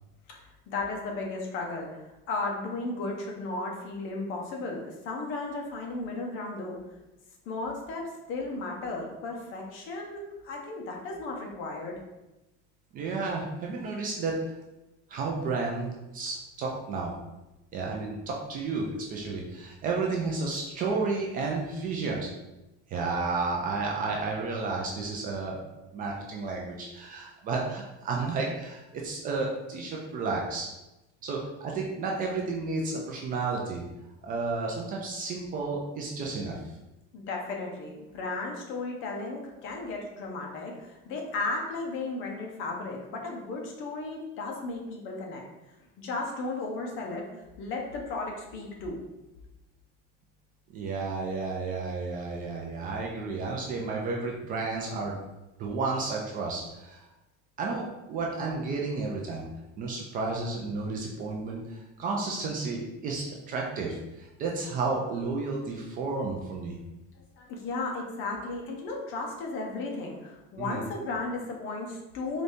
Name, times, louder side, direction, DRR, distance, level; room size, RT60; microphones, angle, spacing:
voice 1, 0.7-6.8 7.5-12.0 37.1-45.4 46.0-47.3 47.6-49.0 67.4-72.4, left 3 dB, 40° left, 0 dB, 0.7 m, -35 dB
voice 2, 12.9-14.4 15.1-17.1 17.7-22.3 22.9-25.6 25.9-30.7 31.2-33.8 34.2-36.6 50.7-55.2 55.6-57.0 57.6-59.5 59.8-66.8 70.6-70.8, right 3 dB, 30° right, -1 dB, 0.3 m, -32 dB
3.9 x 2.6 x 3.4 m, 0.99 s
cardioid pair, 175°, 29 cm